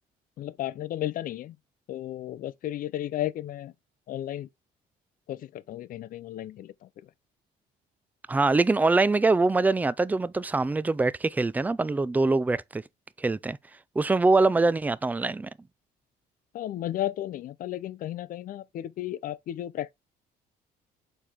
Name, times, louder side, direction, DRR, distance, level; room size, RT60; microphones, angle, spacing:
voice 1, 0.4-1.6 1.9-3.7 4.1-4.5 5.3-6.9 16.5-19.9, left 13 dB, 55° left, 0.5 m, -34 dB
voice 2, 8.3-12.8 13.2-13.6 14.0-15.5, right 3 dB, 10° right, 0.3 m, -23 dB
6.7 x 4.5 x 3.5 m
cardioid pair, 110°, 17 cm